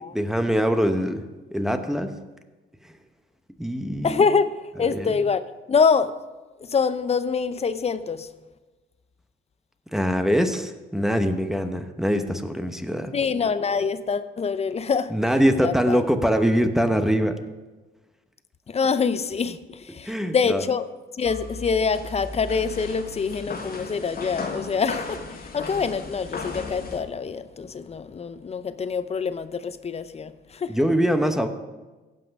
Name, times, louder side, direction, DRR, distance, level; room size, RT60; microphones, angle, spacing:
voice 1, 0.1-1.2 1.5-2.2 3.6-4.2 4.9-5.2 9.9-13.1 15.1-17.4 20.0-20.6 30.7-31.5, equal, ahead, 7 dB, 0.9 m, -23 dB
voice 2, 4.0-5.4 5.7-6.1 6.6-8.3 13.1-15.1 15.6-16.1 18.7-20.9 21.1-30.7, left 5 dB, 30° left, 13 dB, 0.6 m, -25 dB
sound 1, 21.3-27.0, left 3 dB, 50° left, 1.7 m, -35 dB
15.5 x 5.7 x 5.3 m, 1.2 s
cardioid pair, 90°, 20 cm